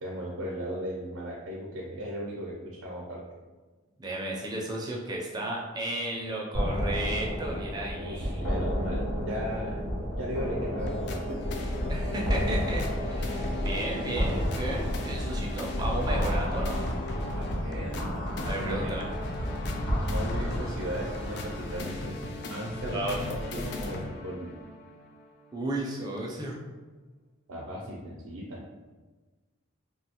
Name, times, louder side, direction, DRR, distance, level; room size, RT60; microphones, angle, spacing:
voice 1, 0.0-3.2 8.0-11.0 11.3-11.4 11.7-12.0 17.4-18.1 18.6-18.9 20.1-24.5 27.5-28.6, equal, 90° right, -3 dB, 0.5 m, -37 dB
voice 2, 4.0-8.6 11.9-16.8 18.4-19.1 22.9-23.3 25.5-26.6, right 1 dB, 20° right, -2 dB, 0.4 m, -34 dB
sound 1, 6.5-21.8, equal, 80° left, 0.9 m, -32 dB
sound 2, 10.8-25.3 25.8-25.9, left 1 dB, 50° left, 0.3 m, -36 dB
2.7 x 2.2 x 2.8 m, 1.3 s
head